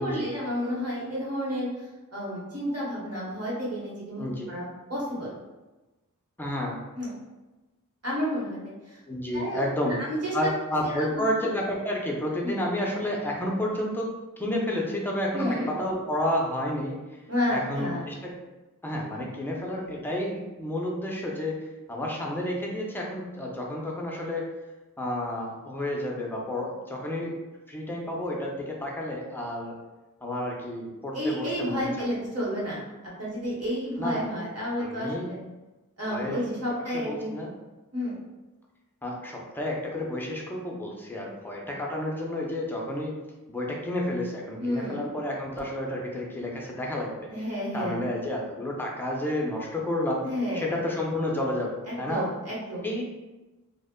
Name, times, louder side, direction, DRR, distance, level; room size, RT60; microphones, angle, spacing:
voice 1, 0.0-5.3 6.9-7.1 8.0-9.0 9.3-10.3 10.8-11.2 12.4-12.6 15.3-15.7 17.3-18.0 31.1-32.8 33.2-35.4 36.0-37.3 37.9-38.2 44.6-45.0 47.3-48.0 50.2-50.6 51.9-52.8, equal, 45° right, -6 dB, 1.0 m, -31 dB
voice 2, 4.2-4.5 6.4-6.8 9.1-9.9 10.3-17.2 17.5-18.3 18.8-21.6 21.9-24.5 25.0-27.4 27.7-29.8 30.2-32.1 34.0-34.3 34.8-35.3 36.0-36.5 36.9-37.5 39.0-43.2 43.5-47.3 47.7-50.3 50.5-52.3 52.8-53.0, left 1 dB, 5° left, -2 dB, 0.5 m, -30 dB
2.1 x 2.0 x 3.6 m, 1.1 s
wide cardioid pair, 65°, 33 cm